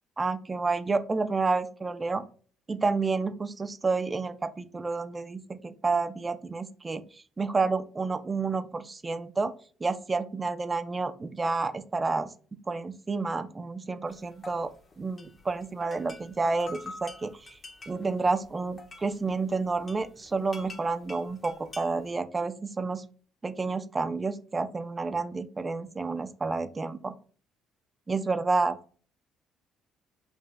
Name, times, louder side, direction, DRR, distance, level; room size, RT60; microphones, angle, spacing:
voice 1, 0.2-2.3 2.7-9.5 9.8-12.3 12.7-14.7 15.0-17.6 17.9-23.0 23.4-27.1 28.1-28.8, right 3 dB, 25° right, 11 dB, 0.5 m, -30 dB
sound 1, 14.1-22.1, left 3 dB, 35° left, 1.1 m, -48 dB
5.5 x 2.7 x 2.2 m, 0.42 s
supercardioid pair, 75°, 0 cm